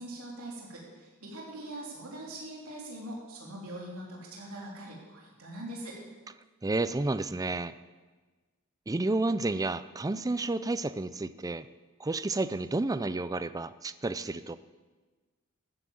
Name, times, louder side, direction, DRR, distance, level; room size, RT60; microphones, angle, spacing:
voice 1, 0.0-6.0, right 1 dB, 75° right, -3 dB, 3.4 m, -42 dB
voice 2, 6.6-7.7 8.9-11.7 12.0-14.6, right 2 dB, 15° right, 13 dB, 0.4 m, -31 dB
15.0 x 9.8 x 7.1 m, 1.3 s
head